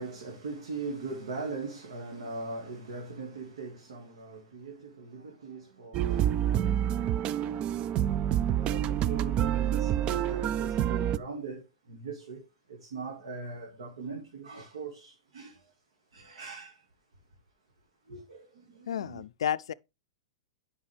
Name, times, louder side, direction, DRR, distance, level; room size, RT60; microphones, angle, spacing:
voice 1, 0.0-7.6 8.5-15.7 16.1-16.8 18.1-19.2, right 4 dB, 80° right, 1.9 m, -41 dB
sound 1, 5.9-11.2, right 10 dB, 35° right, 0.4 m, -27 dB
voice 2, 18.9-19.7, left 9 dB, 80° left, 0.3 m, -31 dB
10.0 x 5.5 x 3.3 m
hypercardioid pair, 110°, 3 cm